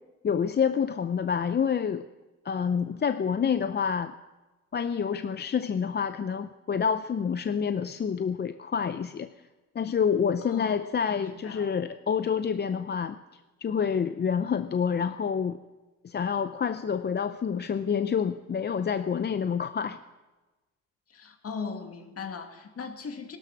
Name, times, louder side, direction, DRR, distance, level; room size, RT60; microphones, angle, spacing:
voice 1, 0.2-2.0 2.4-4.1 4.7-9.3 9.7-13.2 13.6-15.6 16.0-20.0, left 7 dB, 35° left, 10 dB, 0.6 m, -28 dB
voice 2, 10.4-11.7 21.1-23.4, left 5 dB, 50° left, 5 dB, 2.3 m, -39 dB
16.5 x 12.5 x 6.1 m, 1.2 s
cardioid pair, 90°, 30 cm